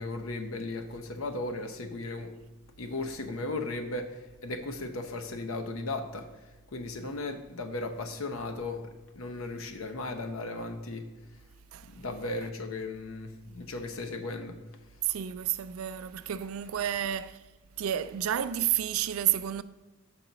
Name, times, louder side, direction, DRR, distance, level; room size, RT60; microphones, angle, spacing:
voice 1, 0.0-2.3 2.8-4.1 4.4-6.2 6.7-8.8 9.2-11.0 11.9-14.5, left 2 dB, 85° left, 0.8 m, -36 dB
voice 2, 15.0-17.4 17.8-19.6, right 11 dB, 85° right, 0.4 m, -30 dB
5.9 x 3.9 x 5.8 m
head